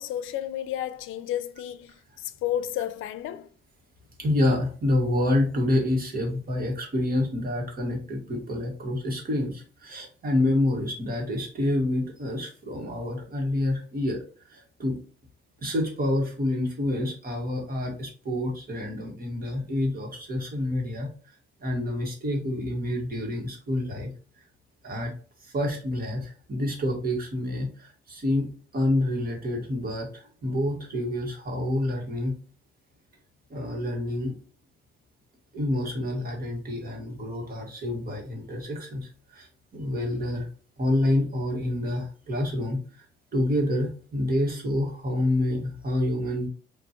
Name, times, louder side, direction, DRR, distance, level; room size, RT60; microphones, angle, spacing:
voice 1, 0.0-1.9 2.4-3.5, left 11 dB, 85° left, 0.5 m, -31 dB
voice 2, 4.2-14.2 14.5-15.0 15.6-21.1 21.6-24.1 24.8-25.1 25.4-28.5 28.7-32.4 33.5-34.4 35.5-39.0 39.3-39.5 39.7-40.5 40.8-42.8 43.3-46.5, left 1 dB, 50° right, 1.9 m, -28 dB
5.3 x 2.9 x 3.1 m
cardioid pair, 90°, 20 cm